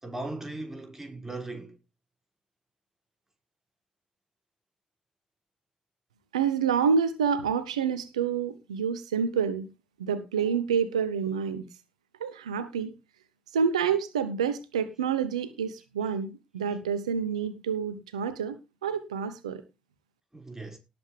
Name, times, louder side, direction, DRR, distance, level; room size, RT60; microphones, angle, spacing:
voice 1, 0.0-1.8 20.3-20.8, right 2 dB, 15° right, 5.8 m, -38 dB
voice 2, 6.3-9.7 10.0-11.7 12.2-12.9 13.5-18.6 18.8-19.6, right 6 dB, 90° right, 0.9 m, -28 dB
18.0 x 7.9 x 3.4 m
hypercardioid pair, 40°, 3 cm